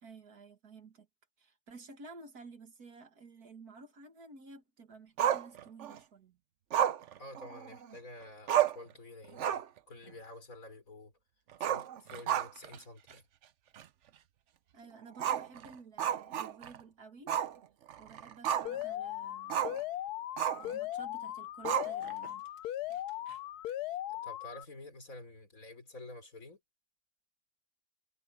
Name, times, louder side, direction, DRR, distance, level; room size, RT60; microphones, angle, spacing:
voice 1, 0.0-1.1 1.4-6.4 14.7-17.4 18.0-19.6 20.6-22.4, right 4 dB, 75° right, 2.6 m, -53 dB
Growling, 5.2-6.0 6.7-8.0 8.2-8.3 8.5-8.9 9.3-9.8 10.1-10.2 11.5-12.8 13.1-13.2 13.8-13.9 15.2-16.8 17.3-17.5 17.9-18.8 19.5-19.8 20.4-20.7 21.6-22.3, right 10 dB, 60° right, 1.0 m, -32 dB
voice 2, 7.2-11.1 11.6-13.3 23.8-26.6, left 2 dB, 60° left, 4.5 m, -50 dB
Alarm, 18.7-24.7, left 13 dB, 85° left, 1.2 m, -38 dB
omnidirectional pair, 1.6 m